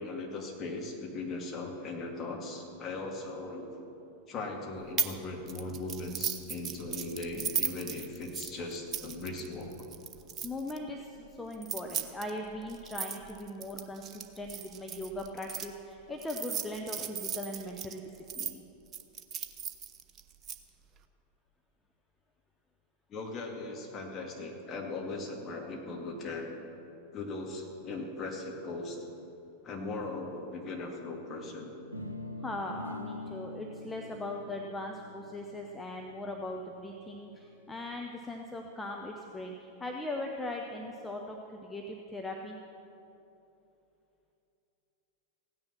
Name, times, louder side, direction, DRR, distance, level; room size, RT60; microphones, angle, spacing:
voice 1, 0.0-3.7 4.3-9.7 23.1-26.6 27.1-29.0 29.6-31.7, left 2 dB, 25° left, 0 dB, 2.3 m, -38 dB
sound 1, 5.0-5.2 5.5-10.8 11.5-15.7 16.2-18.5 18.9-20.6, right 7 dB, 30° right, 0.8 m, -36 dB
voice 2, 10.4-18.6 32.4-42.6, left 1 dB, 10° left, 1 dB, 0.9 m, -39 dB
sound 2, 31.9-37.8, left 2 dB, 90° right, 0.7 m, -45 dB
16.0 x 9.7 x 6.0 m, 2.9 s
figure-of-eight pair, 90°, 0 cm